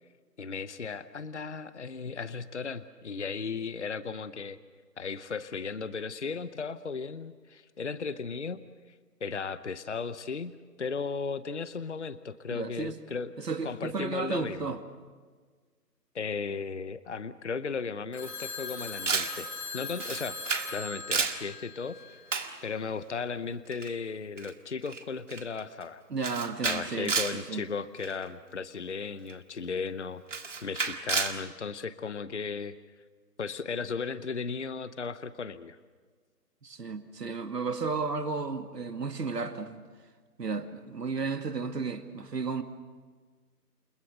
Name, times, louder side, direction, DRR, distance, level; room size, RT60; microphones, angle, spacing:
voice 1, 0.4-4.6 5.0-8.6 9.2-13.3 13.6-14.8 16.1-20.4 20.7-22.0 22.6-26.0 26.6-32.7 33.4-35.8, left 5 dB, 45° left, 14 dB, 0.8 m, -36 dB
voice 2, 12.5-13.0 13.4-14.8 26.1-27.6 36.6-39.8 40.4-42.6, right 4 dB, 80° right, 7 dB, 2.2 m, -33 dB
Telephone, 18.1-22.4, left 4 dB, 75° left, 6.2 m, -40 dB
Camera, 19.1-19.4 20.0-20.7 21.0-21.4 22.3-22.6 23.7-23.9 24.4-24.5 24.9-25.0 25.3-25.6 26.2-27.4 28.0-28.2 29.3-29.4 30.3-31.4, right 5 dB, 50° right, 1.9 m, -31 dB
29.5 x 19.5 x 6.7 m, 1.5 s
hypercardioid pair, 170°, 48 cm